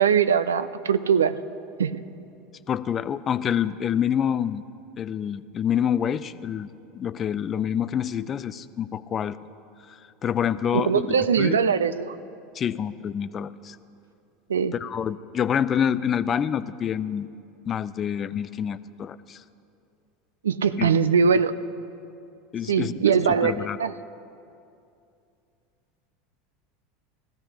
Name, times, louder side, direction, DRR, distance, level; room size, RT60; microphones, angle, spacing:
voice 1, 0.0-1.4 1.8-2.0 10.7-12.2 14.5-14.8 20.4-21.5 22.7-23.9, right 6 dB, 80° right, 13 dB, 0.4 m, -21 dB
voice 2, 2.7-4.6 5.0-6.7 6.9-9.4 9.9-11.6 12.5-13.8 14.7-17.3 17.6-19.4 20.8-20.9 22.5-23.0 23.4-23.8, left 8 dB, 35° left, 16 dB, 0.4 m, -27 dB
18.5 x 15.0 x 2.9 m, 2.6 s
figure-of-eight pair, 80°, 0 cm